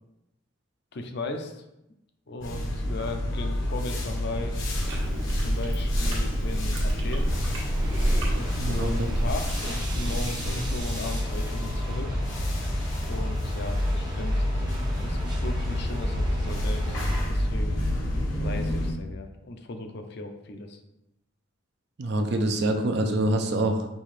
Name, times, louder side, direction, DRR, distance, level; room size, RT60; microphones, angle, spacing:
voice 1, 0.9-1.6 2.3-4.7 5.3-7.3 8.3-12.4 13.0-17.8 18.3-20.8, left 2 dB, 55° left, 6 dB, 0.5 m, -37 dB
sound 1, 2.4-18.9, left 1 dB, 75° left, 0.9 m, -29 dB
Chewing mastication, 4.7-10.8, right 1 dB, 80° right, 1.3 m, -28 dB
sound 2, 7.3-17.2, equal, 20° right, 0.7 m, -37 dB
voice 2, 8.6-9.1 22.0-23.9, right 1 dB, 60° right, 5 dB, 0.5 m, -25 dB
5.4 x 2.8 x 3.2 m, 0.88 s
head